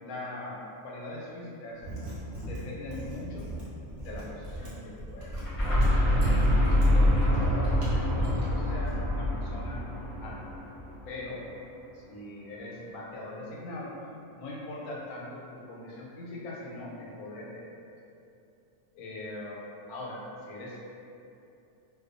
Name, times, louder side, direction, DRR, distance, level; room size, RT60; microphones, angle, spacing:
voice 1, 0.0-1.9 2.3-3.5 4.0-5.4 6.0-9.8 10.2-10.5 11.0-11.4 11.9-14.0 14.4-17.8 18.9-19.6 19.9-20.8, left 2 dB, 90° left, -4 dB, 1.0 m, -41 dB
Mechanisms, 1.7-8.9, equal, 50° right, 0.7 m, -40 dB
sound 1, 5.3-11.1, left 1 dB, 30° left, 0.7 m, -25 dB
2.4 x 2.3 x 2.5 m, 2.7 s
omnidirectional pair, 1.5 m